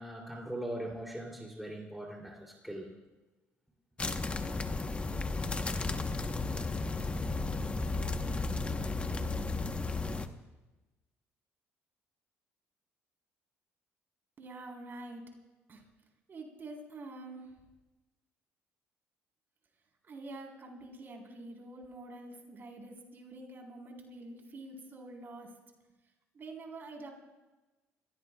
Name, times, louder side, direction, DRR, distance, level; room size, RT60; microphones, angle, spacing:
voice 1, 0.0-2.9 6.4-6.6, right 1 dB, ahead, 0 dB, 2.7 m, -41 dB
sound 1, 4.0-10.3, left 3 dB, 25° left, 0.9 m, -34 dB
voice 2, 14.4-15.2 15.7-15.8 16.3-17.5 20.0-25.5 26.3-27.1, right 2 dB, 45° right, 1 dB, 3.7 m, -46 dB
29.5 x 16.5 x 2.3 m, 1.1 s
supercardioid pair, 80°, 5 cm